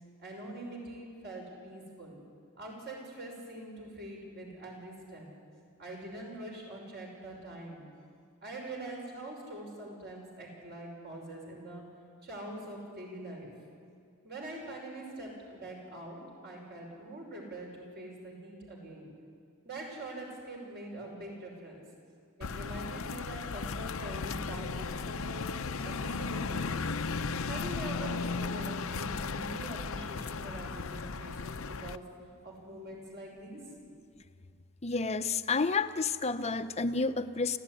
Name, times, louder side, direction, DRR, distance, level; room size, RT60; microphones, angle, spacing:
voice 1, 0.2-2.2 2.6-5.3 5.8-7.8 8.4-11.8 12.2-13.5 14.2-19.1 19.6-21.8 22.4-25.6 25.8-26.9 27.5-32.1 32.4-33.7, right 1 dB, 50° right, 0 dB, 6.0 m, -44 dB
sound 1, 22.4-32.0, left 4 dB, 65° left, 0.7 m, -36 dB
voice 2, 34.8-37.6, left 4 dB, 30° left, 10 dB, 0.8 m, -30 dB
28.5 x 15.0 x 10.0 m, 2.3 s
head